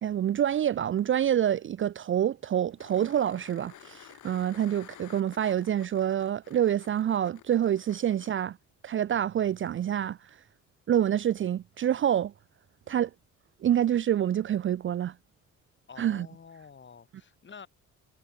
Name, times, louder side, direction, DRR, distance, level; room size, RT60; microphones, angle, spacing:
voice 1, 0.0-8.6 8.8-10.2 10.9-12.3 12.9-13.1 13.6-15.1 16.0-16.3, right 10 dB, 40° right, 0.5 m, -27 dB
sound 1, 2.8-8.3 11.0-11.1, left 14 dB, 80° left, 2.2 m, -52 dB
voice 2, 15.9-17.7, left 6 dB, 40° left, 3.0 m, -48 dB
cardioid pair, 90°, 30 cm